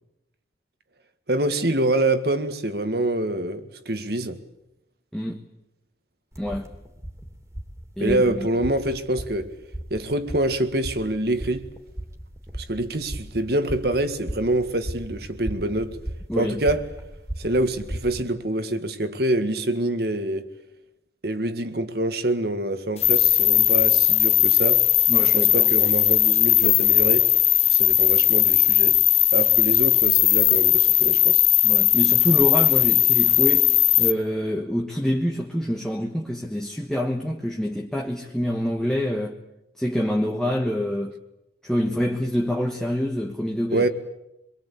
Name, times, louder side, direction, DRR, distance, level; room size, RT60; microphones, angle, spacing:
voice 1, 1.3-4.4 8.0-9.5 9.9-11.7 12.6-16.0 16.4-16.9 17.4-20.5 21.2-24.9 25.3-27.3 27.7-29.0 29.3-31.4 43.7-43.9, right 1 dB, 60° right, 1.9 m, -25 dB
sound 1, 6.3-18.2, right 1 dB, 15° right, 2.9 m, -37 dB
voice 2, 6.4-6.7 8.0-8.5 16.3-16.6 25.1-25.7 31.6-33.7 34.0-39.4 39.8-41.2 41.6-43.9, equal, 5° left, 1.3 m, -26 dB
sound 2, 23.0-34.1, left 12 dB, 35° left, 1.2 m, -18 dB
25.0 x 23.0 x 8.5 m
head